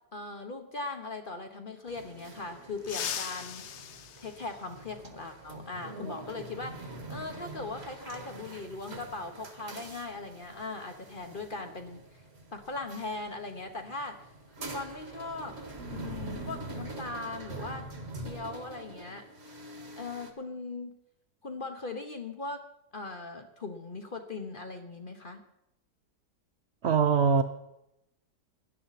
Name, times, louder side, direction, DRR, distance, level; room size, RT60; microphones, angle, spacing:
voice 1, 0.1-3.7 4.2-12.2 12.5-14.2 14.6-15.6 15.9-17.9 18.2-19.3 20.0-20.9 21.4-22.6 22.9-25.4, left 3 dB, 35° left, 6 dB, 1.0 m, -39 dB
sound 1, 1.9-20.3, right 2 dB, 40° right, 1.7 m, -44 dB
sound 2, 2.8-5.2 6.8-6.9 8.2-8.3 9.9-10.1 10.4-10.6 11.1-13.3 13.6-13.8 14.2-14.7, left 9 dB, 60° left, 0.7 m, -41 dB
voice 2, 26.8-27.4, right 6 dB, 65° right, 10 dB, 0.6 m, -22 dB
17.0 x 11.5 x 4.1 m, 0.83 s
omnidirectional pair, 1.8 m